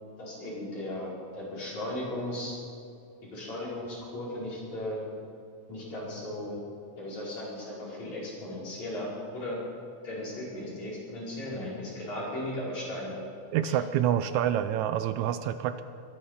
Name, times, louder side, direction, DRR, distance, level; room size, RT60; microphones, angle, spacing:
voice 1, 0.2-2.6 3.2-5.0 5.7-6.6 7.0-9.6 10.0-13.2 13.6-13.8, left 1 dB, 65° left, -7 dB, 6.6 m, -36 dB
voice 2, 13.5-15.8, right 10 dB, 80° right, 11 dB, 1.9 m, -27 dB
22.5 x 11.0 x 5.7 m, 2.5 s
omnidirectional pair, 3.5 m